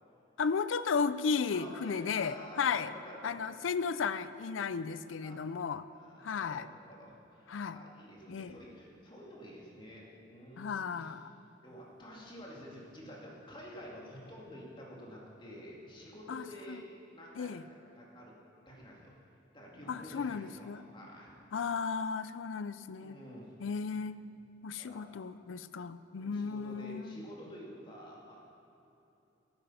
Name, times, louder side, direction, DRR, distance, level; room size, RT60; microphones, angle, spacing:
voice 1, 0.4-2.9 3.2-5.8 6.2-6.7 7.5-7.8 8.3-8.6 10.6-11.3 16.3-16.8 17.4-17.6 19.9-20.8 21.5-23.2 23.6-24.2 24.6-27.2, left 5 dB, 85° left, 14 dB, 0.5 m, -34 dB
voice 2, 1.5-3.6 5.2-5.4 5.9-11.1 11.6-16.8 17.1-17.6 18.0-18.3 18.7-19.1 19.5-21.7 23.0-23.5 24.8-25.1 26.1-28.4, equal, 25° left, -3 dB, 2.4 m, -50 dB
15.5 x 8.9 x 5.7 m, 2.9 s
head